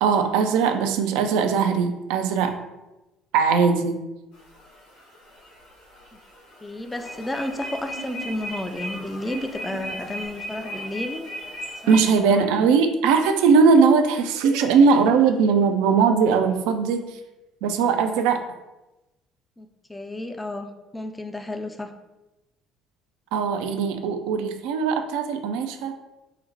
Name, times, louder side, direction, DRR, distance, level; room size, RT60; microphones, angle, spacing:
voice 1, 0.0-2.6 3.3-4.0 11.9-17.1 17.6-18.4 23.3-25.9, right 5 dB, 65° right, 6 dB, 0.3 m, -20 dB
sound 1, 4.3-12.2, equal, 75° left, 1.0 m, -37 dB
voice 2, 6.6-11.3 11.8-12.6 19.6-21.9, left 1 dB, 15° left, 6 dB, 0.4 m, -32 dB
3.9 x 2.1 x 4.0 m, 1.0 s
figure-of-eight pair, 55°, 0 cm